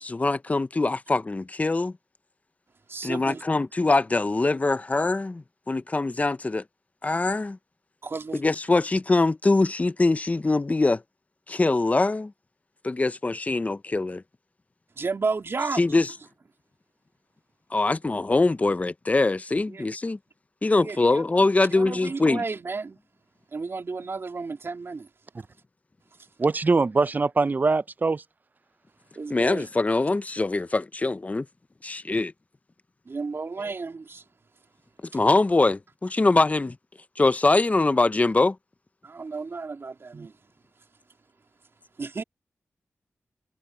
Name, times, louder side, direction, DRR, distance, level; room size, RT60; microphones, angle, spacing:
voice 1, 0.0-1.9 3.0-6.6 7.0-7.6 8.4-11.0 11.5-12.3 12.8-14.2 15.8-16.0 17.7-20.2 20.6-22.4 29.3-31.4 31.8-32.3 35.1-36.8 37.2-38.6, left 3 dB, 30° left, 0.7 m, -23 dB
voice 2, 2.9-3.4 8.0-8.4 14.9-16.0 19.7-19.9 20.8-21.3 21.7-23.0 23.5-25.1 26.1-26.3 29.1-29.7 33.0-34.2 35.1-35.2 39.0-40.5 40.8-40.9 42.0-42.2, right 4 dB, 55° right, 3.2 m, -33 dB
voice 3, 26.4-28.2, right 3 dB, 40° right, 0.5 m, -22 dB
cardioid pair, 60°, 5 cm